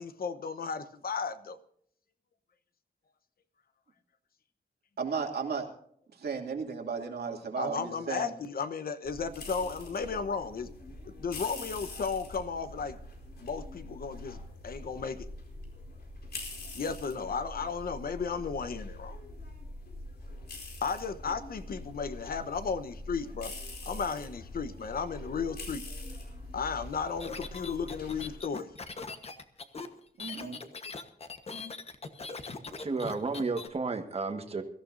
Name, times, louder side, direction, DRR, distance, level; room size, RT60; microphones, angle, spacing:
voice 1, 0.0-1.6 7.6-10.7 11.2-13.0 13.4-14.4 14.6-15.3 16.7-19.2 20.8-23.5 23.8-25.9 26.5-28.7, left 5 dB, 65° left, 11 dB, 1.0 m, -34 dB
voice 2, 5.0-5.7 6.2-8.3 30.2-30.6, right 5 dB, 80° right, 1 dB, 2.7 m, -34 dB
sound 1, 9.0-28.4, left 2 dB, 85° left, 4.6 m, -44 dB
sound 2, 27.2-33.7, left 4 dB, 40° left, 1.2 m, -41 dB
voice 3, 32.8-34.6, right 4 dB, 40° right, 6 dB, 1.5 m, -32 dB
23.5 x 14.5 x 2.7 m, 0.64 s
wide cardioid pair, 170°, 16 cm